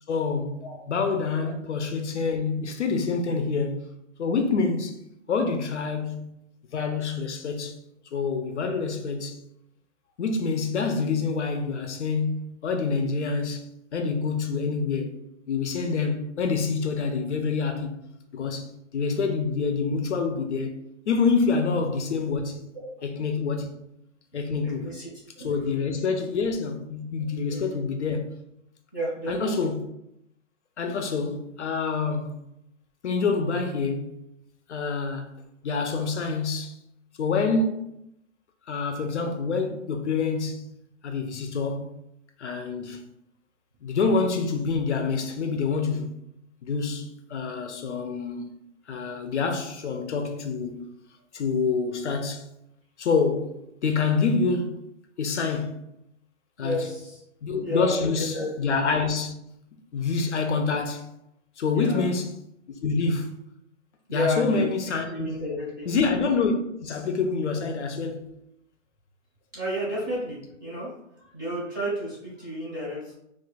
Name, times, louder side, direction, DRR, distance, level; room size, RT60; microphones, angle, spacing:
voice 1, 0.1-3.9 4.2-5.0 5.3-6.3 6.7-7.8 8.1-9.4 10.2-15.2 15.5-17.9 18.3-20.8 21.1-22.6 23.0-23.7 24.3-24.9 25.4-28.3 29.3-29.9 30.8-32.4 33.0-34.2 34.7-35.3 35.6-36.8 37.2-37.9 38.7-40.7 41.0-41.9 42.4-43.0 43.8-46.2 46.6-48.5 48.9-50.9 51.3-52.5 53.0-54.9 55.2-55.8 56.6-56.9 57.4-59.3 59.9-61.1 61.6-62.3 62.8-63.3 64.1-65.3 65.9-66.5 66.8-68.3, left 4 dB, 60° left, 0.5 m, -27 dB
voice 2, 24.6-25.1 25.4-25.6 27.5-27.8 28.9-29.6 56.6-57.2 57.6-58.5 60.0-60.1 61.7-62.0 64.1-64.6 65.1-65.9 69.5-70.9 71.2-73.1, equal, 15° right, 0.6 m, -31 dB
2.5 x 2.3 x 4.0 m
hypercardioid pair, 170°, 39 cm